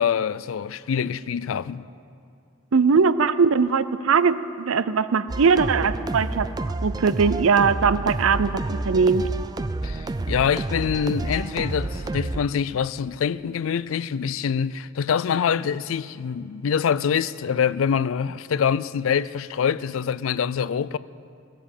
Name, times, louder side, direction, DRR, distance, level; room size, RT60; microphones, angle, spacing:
voice 1, 0.0-1.9 9.8-21.0, left 7 dB, 70° left, 0.4 m, -25 dB
voice 2, 2.7-6.5 6.8-9.2, right 5 dB, 75° right, 0.5 m, -20 dB
sound 1, 5.3-12.4, right 2 dB, 20° right, 0.3 m, -29 dB
18.0 x 7.5 x 8.4 m
head